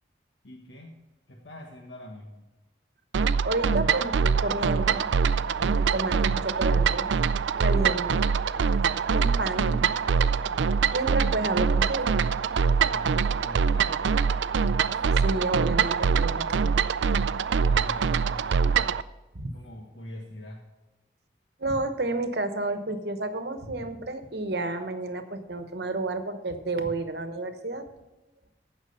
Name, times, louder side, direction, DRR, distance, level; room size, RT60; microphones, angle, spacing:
voice 1, 0.4-1.0 1.3-2.4 12.8-14.3 17.6-19.0 19.5-20.7, left 1 dB, 85° left, 1 dB, 1.4 m, -43 dB
sound 1, 3.1-19.0, right 6 dB, 85° right, 0.4 m, -24 dB
voice 2, 3.4-5.1 5.6-7.1 7.6-8.2 9.1-9.9 10.9-12.1 15.2-16.8 19.3-19.5 21.6-27.9, right 2 dB, 65° right, 8 dB, 1.1 m, -30 dB
15.5 x 6.0 x 5.6 m, 1.1 s
head